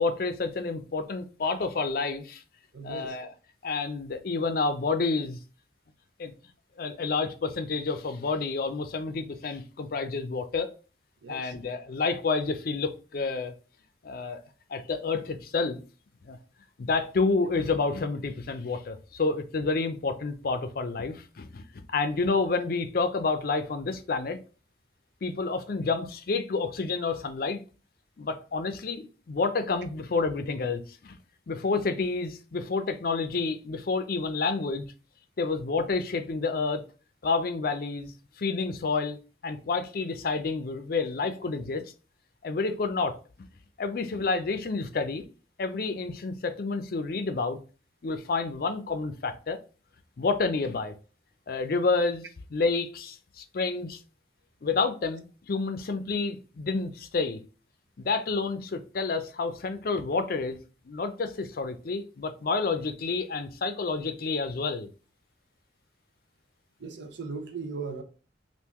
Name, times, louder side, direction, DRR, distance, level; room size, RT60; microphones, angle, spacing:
voice 1, 0.0-2.4 2.8-3.3 3.6-5.4 6.2-6.3 6.8-10.7 11.3-13.5 14.0-14.4 14.7-15.8 16.2-16.4 16.8-24.4 25.2-27.6 28.2-31.2 31.5-34.9 35.4-36.8 37.2-41.9 42.4-43.5 43.8-45.3 45.6-47.6 48.0-49.6 50.2-50.9 51.5-54.0 54.6-57.4 58.0-60.6 60.9-64.9, left 4 dB, 55° left, 0.5 m, -29 dB
voice 2, 2.7-3.2 11.2-11.5 66.8-68.0, right 4 dB, 80° right, 0.7 m, -38 dB
3.5 x 2.5 x 2.9 m
head